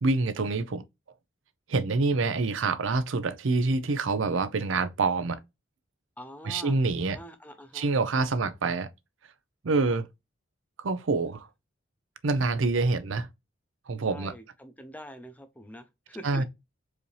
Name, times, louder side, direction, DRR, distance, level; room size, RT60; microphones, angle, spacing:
voice 1, 0.0-0.8 1.7-5.4 6.4-7.2 7.7-8.9 9.6-10.1 10.8-11.5 12.2-13.3 13.9-14.3 16.2-16.4, right 3 dB, 80° right, 0.6 m, -26 dB
voice 2, 6.2-6.8 7.1-7.9 8.2-8.5 9.8-10.0 14.1-16.4, equal, 10° left, 0.6 m, -45 dB
4.8 x 2.8 x 3.2 m
head